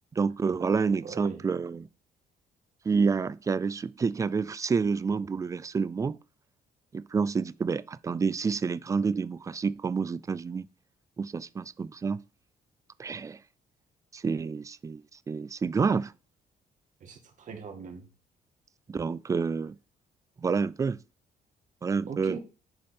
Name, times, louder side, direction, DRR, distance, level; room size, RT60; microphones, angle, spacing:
voice 1, 0.2-1.9 2.8-6.2 6.9-10.7 11.2-12.2 13.0-13.4 14.1-16.1 18.9-19.8 20.4-21.0 21.8-22.4, right 5 dB, 20° right, 0.3 m, -28 dB
voice 2, 1.0-1.5 17.0-18.1 22.1-22.4, right 6 dB, 50° right, 2.1 m, -40 dB
9.5 x 5.2 x 4.3 m
cardioid pair, 150°, 17 cm